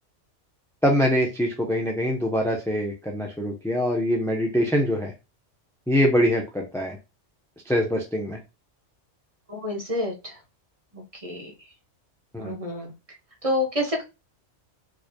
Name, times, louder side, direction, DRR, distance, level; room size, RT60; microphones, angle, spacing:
voice 1, 0.8-5.1 5.9-6.9 7.7-8.4 12.3-12.5, equal, 5° left, 1 dB, 0.7 m, -24 dB
voice 2, 9.5-10.4 10.9-11.5 12.4-12.9 13.4-14.0, left 1 dB, 30° right, 0 dB, 1.3 m, -28 dB
4.7 x 3.2 x 2.3 m, 0.26 s
omnidirectional pair, 1.2 m